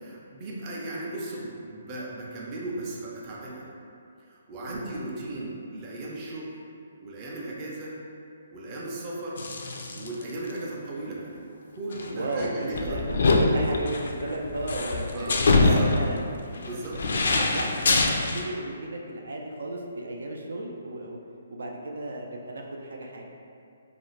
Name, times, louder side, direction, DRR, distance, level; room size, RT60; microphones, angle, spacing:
voice 1, 0.0-3.7 4.3-6.6 7.0-7.9 8.5-9.4 9.9-11.4 11.8-13.2 15.1-15.9 16.6-17.0 17.4-17.7, right 2 dB, 25° right, -5 dB, 0.4 m, -36 dB
sound 1, 9.4-10.2 10.5-10.6 11.9-18.4, left 3 dB, 70° left, 0.3 m, -24 dB
voice 2, 12.1-16.2 17.4-21.2 21.5-23.3, right 2 dB, 90° right, 0 dB, 0.3 m, -34 dB
2.4 x 2.4 x 3.1 m, 2.5 s
hypercardioid pair, 165°, 0 cm